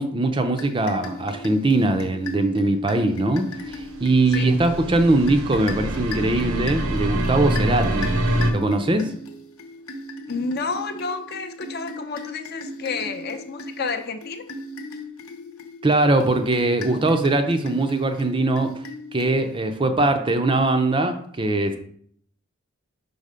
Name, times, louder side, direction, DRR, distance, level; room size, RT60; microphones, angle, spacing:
voice 1, 0.0-8.1 8.5-9.1 15.8-18.7 19.1-21.8, right 2 dB, 25° right, 7 dB, 0.4 m, -21 dB
sound 1, 0.5-19.7, left 2 dB, 80° left, 0.9 m, -37 dB
sound 2, 3.8-8.5, right 1 dB, 75° right, 0.8 m, -25 dB
voice 2, 10.3-14.4, left 4 dB, 45° left, 7 dB, 0.6 m, -30 dB
5.4 x 4.1 x 5.0 m, 0.64 s
head